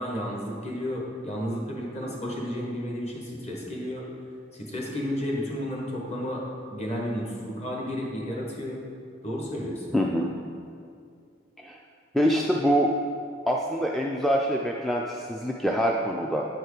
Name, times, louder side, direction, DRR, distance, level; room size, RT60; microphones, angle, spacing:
voice 1, 0.0-4.1 4.5-6.4 6.7-8.8 9.2-9.8, equal, 35° left, -2 dB, 1.4 m, -32 dB
voice 2, 9.9-10.3 11.6-11.8 12.1-12.9 13.5-16.5, equal, ahead, -1 dB, 0.3 m, -25 dB
9.0 x 4.7 x 4.9 m, 2.3 s
head